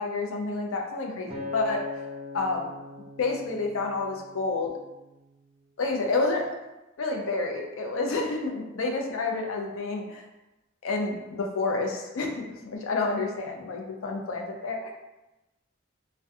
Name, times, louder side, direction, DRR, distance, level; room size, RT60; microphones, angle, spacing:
voice 1, 0.0-1.8 2.3-2.7 3.2-4.8 5.8-6.5 7.0-10.2 10.8-14.9, left 3 dB, 85° left, 2 dB, 0.4 m, -29 dB
Acoustic guitar, 1.3-5.6 6.2-6.5, left 4 dB, 25° right, 0.3 m, -41 dB
2.3 x 2.1 x 2.5 m, 0.99 s
head